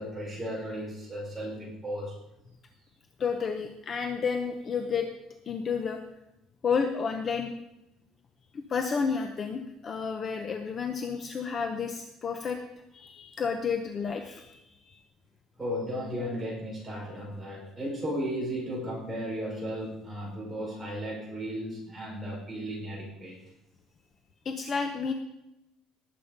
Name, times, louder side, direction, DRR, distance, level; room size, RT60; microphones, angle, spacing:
voice 1, 0.0-2.2 15.6-23.4, equal, 10° right, -5 dB, 5.4 m, -35 dB
voice 2, 3.2-5.1 5.5-6.0 6.6-7.5 8.5-12.6 12.9-14.6 14.9-15.0 24.4-25.1, left 5 dB, 25° left, 6 dB, 0.8 m, -31 dB
19.0 x 7.7 x 5.2 m, 0.90 s
cardioid pair, 175°, 0 cm